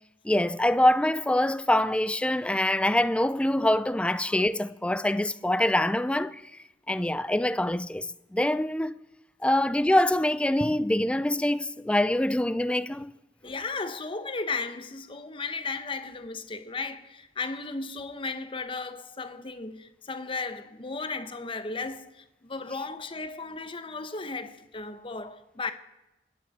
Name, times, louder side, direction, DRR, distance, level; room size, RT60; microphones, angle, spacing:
voice 1, 0.2-6.4 6.9-8.1 8.3-8.9 9.4-13.1, left 1 dB, 5° left, 0.4 m, -24 dB
voice 2, 13.4-25.7, left 3 dB, 30° left, 1.0 m, -35 dB
27.0 x 10.0 x 4.2 m
head